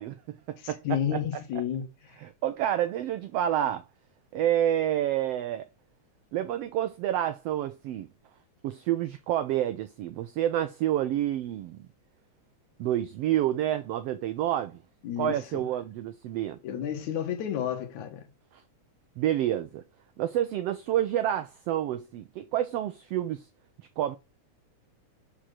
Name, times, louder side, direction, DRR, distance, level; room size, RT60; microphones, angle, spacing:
voice 1, 0.0-1.2 2.2-3.8 4.3-5.7 6.3-8.1 8.6-11.8 12.8-14.8 15.2-16.6 18.5-18.6 19.2-19.8 20.2-23.5 24.0-24.2, right 12 dB, 80° right, 1.4 m, -29 dB
voice 2, 0.6-1.9 15.0-15.6 16.6-18.2, left 9 dB, 75° left, 2.6 m, -31 dB
7.5 x 4.2 x 6.4 m
omnidirectional pair, 3.4 m